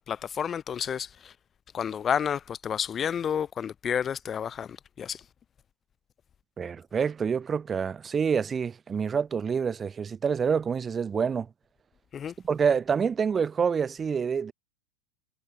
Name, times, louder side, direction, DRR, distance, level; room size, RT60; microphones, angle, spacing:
voice 1, 0.0-1.3 1.7-5.2 12.1-12.3, left 8 dB, 25° left, 0.5 m, -30 dB
voice 2, 6.6-11.5 12.4-14.5, right 6 dB, 20° right, 0.7 m, -27 dB
figure-of-eight pair, 90°, 0 cm